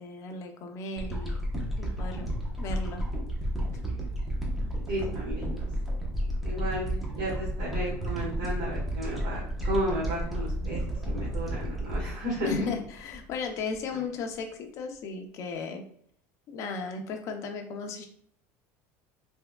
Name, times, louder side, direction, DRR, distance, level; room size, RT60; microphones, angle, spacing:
voice 1, 0.0-1.4 1.8-2.3 2.6-3.0 12.4-15.8 16.5-18.1, left 4 dB, 45° left, 4 dB, 0.6 m, -35 dB
sound 1, 1.0-13.3 13.8-13.9, equal, 5° right, 0.8 m, -32 dB
voice 2, 4.9-5.7 6.4-10.8 11.0-12.5, right 1 dB, 60° right, -7 dB, 1.5 m, -33 dB
3.5 x 3.3 x 2.2 m, 0.63 s
cardioid pair, 140°, 7 cm